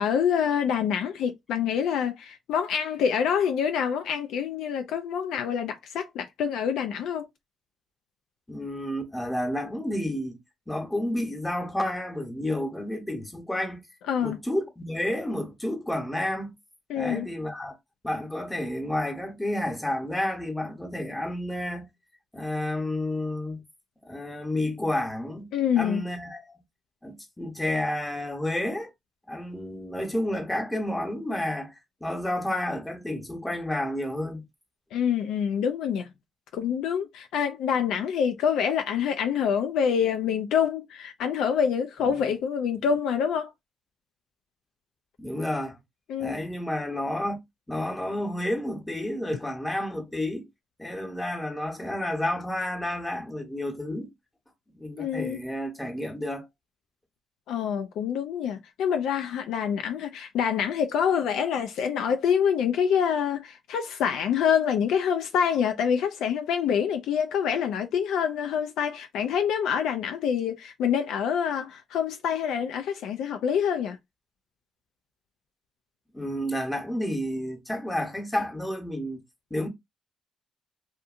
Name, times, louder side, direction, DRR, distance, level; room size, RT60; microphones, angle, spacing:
voice 1, 0.0-7.3 14.1-14.4 16.9-17.3 25.5-26.0 34.9-36.1 36.5-43.5 46.1-46.4 55.0-55.4 57.5-74.0, left 7 dB, 85° left, 0.3 m, -26 dB
voice 2, 8.5-10.4 10.7-13.8 14.2-16.5 16.9-17.7 18.0-21.9 22.3-23.6 24.0-25.5 25.8-26.6 27.0-28.9 29.3-34.4 42.0-42.3 45.2-45.8 46.2-47.4 47.7-50.5 50.8-54.1 54.8-56.4 76.1-79.2 79.5-79.7, left 1 dB, 10° left, 0.8 m, -30 dB
2.7 x 2.5 x 2.4 m
cardioid pair, 90°, 0 cm